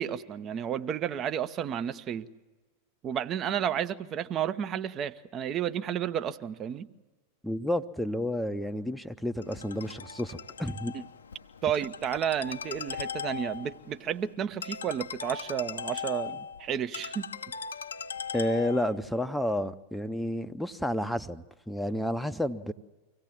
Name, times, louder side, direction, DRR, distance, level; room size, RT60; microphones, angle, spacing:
voice 1, 0.0-2.3 3.0-6.9 11.6-17.3, right 9 dB, 30° right, 0.8 m, -32 dB
voice 2, 7.4-10.9 18.3-22.7, left 1 dB, ahead, 0.7 m, -31 dB
Ringtone, 9.4-19.0, left 7 dB, 70° left, 0.7 m, -39 dB
25.0 x 16.5 x 7.6 m
figure-of-eight pair, 90°, 0 cm